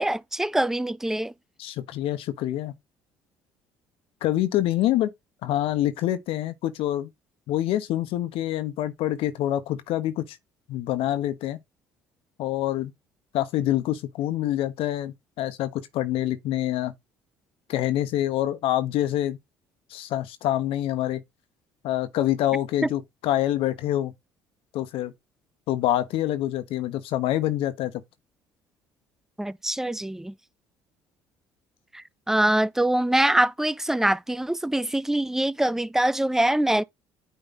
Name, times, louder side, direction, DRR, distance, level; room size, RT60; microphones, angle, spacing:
voice 1, 0.0-1.3 29.4-30.3 31.9-36.8, right 1 dB, 5° right, 0.4 m, -24 dB
voice 2, 1.6-2.7 4.2-5.1 5.4-7.1 7.5-10.4 10.7-11.6 12.4-12.9 13.3-16.9 17.7-19.4 19.9-21.2 21.8-24.1 24.7-25.1 25.7-27.9, left 13 dB, 70° left, 1.2 m, -26 dB
9.3 x 3.4 x 4.0 m
supercardioid pair, 70°, 10 cm